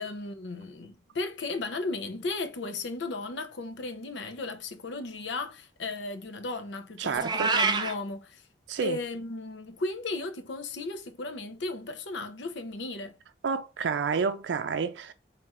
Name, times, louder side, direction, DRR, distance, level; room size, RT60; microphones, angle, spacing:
voice 1, 0.0-8.4 8.8-13.2, left 3 dB, 85° left, 0.6 m, -35 dB
voice 2, 7.0-7.5 8.7-9.0 13.4-15.1, right 5 dB, 85° right, 0.4 m, -29 dB
Meow, 7.2-7.9, right 4 dB, 25° right, 0.4 m, -26 dB
4.1 x 2.4 x 3.6 m
head